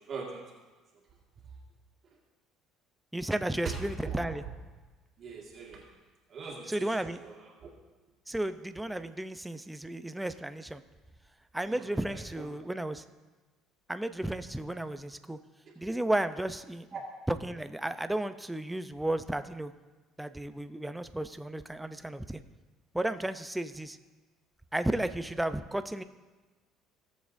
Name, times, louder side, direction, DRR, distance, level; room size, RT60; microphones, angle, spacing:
voice 1, 0.1-0.4 3.6-3.8 4.0-4.4 5.2-5.8 6.3-7.7 11.7-12.5 15.7-15.8 16.9-17.0, right 5 dB, 45° right, -2 dB, 1.8 m, -41 dB
voice 2, 3.1-4.4 6.7-7.2 8.3-10.8 11.5-13.0 13.9-15.4 15.8-16.9 17.3-19.7 20.2-22.4 22.9-24.0 24.7-26.0, right 1 dB, 5° right, 11 dB, 0.5 m, -33 dB
18.0 x 7.2 x 2.6 m, 1.2 s
cardioid pair, 110°, 0 cm